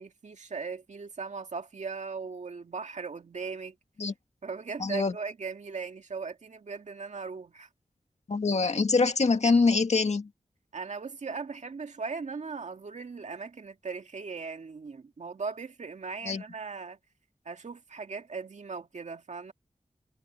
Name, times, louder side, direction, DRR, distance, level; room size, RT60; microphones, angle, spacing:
voice 1, 0.0-3.8 4.4-7.7 10.7-17.0 17.5-19.5, right 4 dB, 75° right, 2.0 m, -38 dB
voice 2, 4.8-5.1 8.3-10.3 16.3-16.4, left 4 dB, 65° left, 1.8 m, -24 dB
cardioid pair, 50°, 12 cm